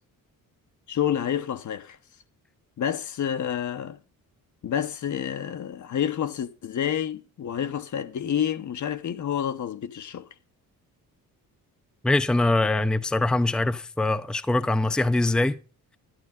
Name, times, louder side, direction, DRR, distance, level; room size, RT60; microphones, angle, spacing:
voice 1, 0.9-2.0 2.8-4.0 4.6-10.3, left 9 dB, 55° left, 1.0 m, -29 dB
voice 2, 12.0-15.6, left 2 dB, ahead, 0.6 m, -23 dB
11.5 x 11.0 x 3.7 m
cardioid pair, 115°, 35 cm